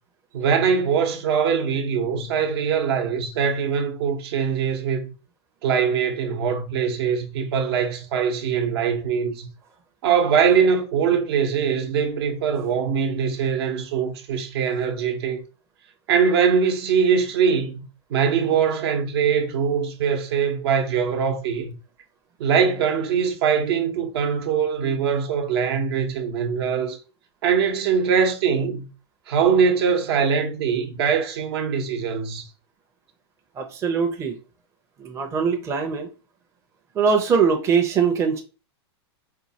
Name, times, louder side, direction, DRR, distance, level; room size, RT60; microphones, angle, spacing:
voice 1, 0.3-5.1 5.6-9.5 10.0-15.4 16.1-21.7 22.4-27.0 27.4-28.9 29.3-32.5, right 6 dB, 65° right, 1.0 m, -22 dB
voice 2, 33.6-34.3 35.0-36.1 36.9-38.4, right 6 dB, 20° right, 0.6 m, -22 dB
4.5 x 2.3 x 2.8 m
hypercardioid pair, 130°, 14 cm